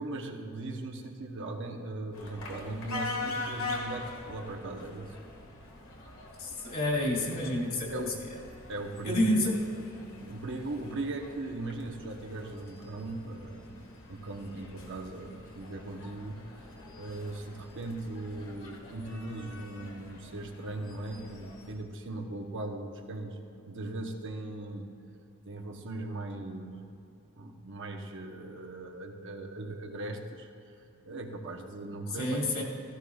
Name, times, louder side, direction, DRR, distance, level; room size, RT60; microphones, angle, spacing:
voice 1, 0.0-5.2 7.9-8.2 8.7-9.6 10.2-13.7 14.1-16.5 16.9-23.4 23.7-24.9 25.4-26.9 27.4-30.5 31.0-32.5, right 2 dB, 60° right, 3 dB, 1.0 m, -39 dB
sound 1, 2.1-21.7, left 3 dB, 70° left, 1.8 m, -44 dB
voice 2, 6.4-8.1 9.0-9.7 32.1-32.6, left 1 dB, 45° left, -1 dB, 2.5 m, -29 dB
16.5 x 14.5 x 2.4 m, 2.7 s
head